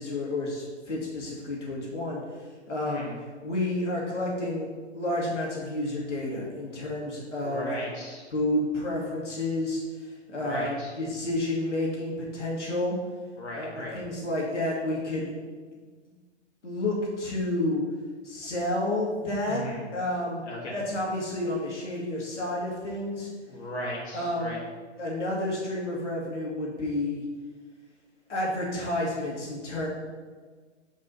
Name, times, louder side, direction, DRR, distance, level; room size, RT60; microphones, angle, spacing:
voice 1, 0.0-2.2 2.7-3.1 3.4-7.7 8.3-13.0 13.5-15.5 16.6-17.8 18.2-19.6 19.9-20.4 20.7-23.3 24.1-24.6 25.0-27.2 28.3-29.9, left 1 dB, 80° left, -3 dB, 2.3 m, -30 dB
voice 2, 2.8-3.2 7.4-8.2 10.3-10.9 13.4-14.0 19.5-19.9 20.5-20.8 23.5-24.6, equal, 65° left, -5 dB, 2.1 m, -37 dB
7.0 x 5.3 x 4.1 m, 1.5 s
hypercardioid pair, 135°, 35 cm